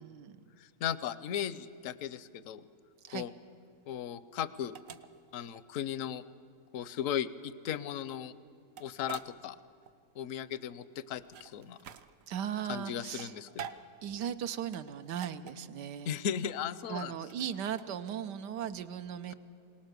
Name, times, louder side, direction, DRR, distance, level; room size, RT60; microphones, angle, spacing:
voice 1, 0.0-0.4 3.0-3.3 12.3-13.4 14.0-16.2 16.9-19.3, right 9 dB, 85° right, 9 dB, 1.4 m, -37 dB
voice 2, 0.6-2.6 3.1-3.3 3.9-4.8 5.3-6.2 6.7-8.3 8.8-9.6 10.1-11.8 12.7-13.5 16.1-17.1, left 9 dB, 65° left, 16 dB, 0.9 m, -36 dB
sound 1, 3.0-18.4, right 7 dB, 65° right, 1.0 m, -50 dB
22.0 x 19.0 x 6.7 m, 2.6 s
omnidirectional pair, 1.8 m